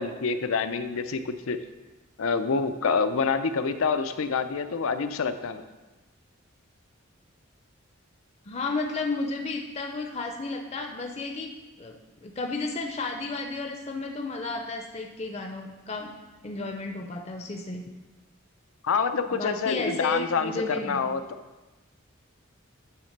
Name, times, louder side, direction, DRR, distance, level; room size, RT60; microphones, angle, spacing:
voice 1, 0.0-1.6 2.2-5.6 18.8-21.2, left 5 dB, 90° left, 10 dB, 0.5 m, -27 dB
voice 2, 8.5-11.5 11.8-16.1 16.4-17.9 19.3-21.0, left 3 dB, 30° left, 3 dB, 0.5 m, -33 dB
9.4 x 3.3 x 6.5 m, 1.1 s
head